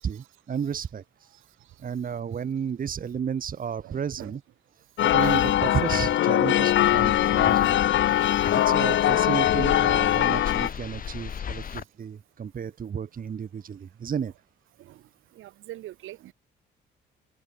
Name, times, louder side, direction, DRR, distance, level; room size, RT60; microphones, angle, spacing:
voice 1, 0.0-1.3 1.8-4.4 5.0-7.8 8.4-14.3, right 7 dB, 45° right, 1.5 m, -32 dB
voice 2, 3.8-4.4 5.2-5.4 7.2-7.3 10.6-10.7 14.8-15.0 15.3-16.3, right 15 dB, 85° right, 5.3 m, -43 dB
sound 1, 5.0-10.7, left 12 dB, 70° left, 1.3 m, -21 dB
sound 2, 6.8-11.8, left 8 dB, 45° left, 1.1 m, -35 dB
cardioid pair, 90°, 20 cm